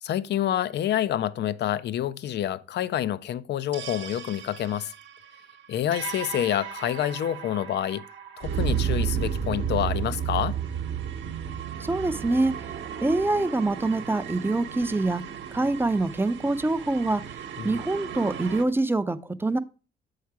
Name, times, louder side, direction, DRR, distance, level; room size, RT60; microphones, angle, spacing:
voice 1, 0.0-4.9 5.7-8.0 8.4-10.6 17.6-17.7, left 11 dB, 60° left, 0.4 m, -28 dB
sound 1, 3.7-18.7, right 8 dB, 65° right, 1.0 m, -33 dB
voice 2, 11.8-12.5 13.0-15.2 15.5-17.2 17.6-19.6, right 2 dB, 10° right, 0.5 m, -25 dB
7.2 x 4.8 x 4.6 m
cardioid pair, 90°, 20 cm